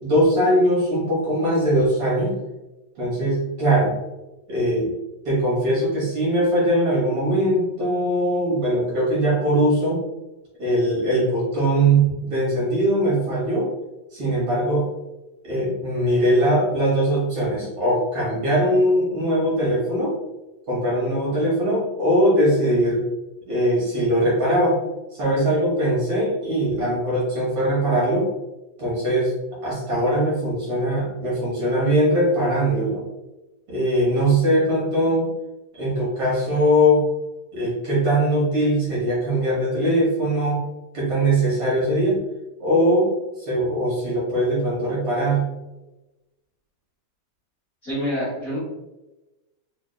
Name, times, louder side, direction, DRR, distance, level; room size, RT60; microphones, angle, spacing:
voice 1, 0.0-2.4 3.0-3.9 4.5-4.9 5.3-10.0 10.6-13.7 14.1-14.9 15.4-20.1 20.7-23.0 23.5-24.8 25.1-28.3 28.8-29.3 29.6-33.0 33.7-35.3 35.7-37.1 37.5-40.6 40.9-42.2 42.6-43.1 43.4-45.5, right 1 dB, 60° right, -6 dB, 1.7 m, -21 dB
voice 2, 47.8-48.6, equal, 45° left, -10 dB, 1.2 m, -26 dB
5.0 x 2.8 x 2.2 m, 1.0 s
omnidirectional pair, 3.4 m